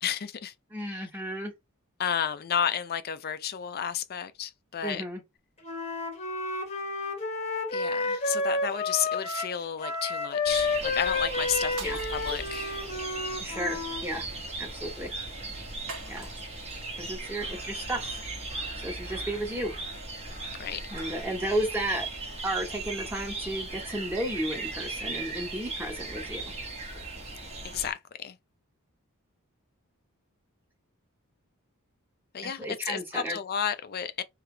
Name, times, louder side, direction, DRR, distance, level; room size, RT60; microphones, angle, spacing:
voice 1, 0.0-0.5 2.0-5.0 7.7-12.8 20.6-20.8 27.6-28.4 32.3-34.2, left 8 dB, 45° left, 0.5 m, -32 dB
voice 2, 0.7-1.5 4.8-5.2 11.8-12.0 13.4-14.2 14.6-15.1 16.1-16.3 17.0-18.2 18.7-19.8 20.9-22.1 22.4-26.5 32.4-33.4, right 1 dB, 10° right, 1.3 m, -33 dB
Wind instrument woodwind instrument, 5.6-14.1, left 3 dB, 30° left, 1.0 m, -31 dB
sound 1, 10.4-27.9, right 3 dB, 30° right, 1.1 m, -37 dB
sound 2, 11.7-13.2 15.9-16.8, right 4 dB, 85° right, 1.3 m, -44 dB
3.3 x 2.9 x 3.3 m
head